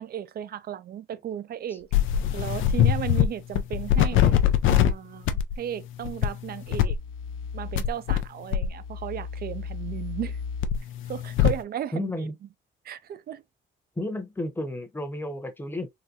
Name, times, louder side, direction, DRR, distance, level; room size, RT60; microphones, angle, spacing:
voice 1, 0.0-1.9 2.3-4.4 4.6-7.0 7.5-10.4 11.1-12.3 12.8-13.4, right 10 dB, 50° right, 0.4 m, -35 dB
sound 1, 1.9-3.3 3.6-4.9 5.3-5.5 6.0-6.3 6.7-8.2 8.5-11.6, left 10 dB, 85° left, 0.5 m, -24 dB
voice 2, 11.9-12.4 14.0-15.9, left 1 dB, 10° left, 0.9 m, -32 dB
3.8 x 2.2 x 2.7 m
cardioid pair, 90°, 20 cm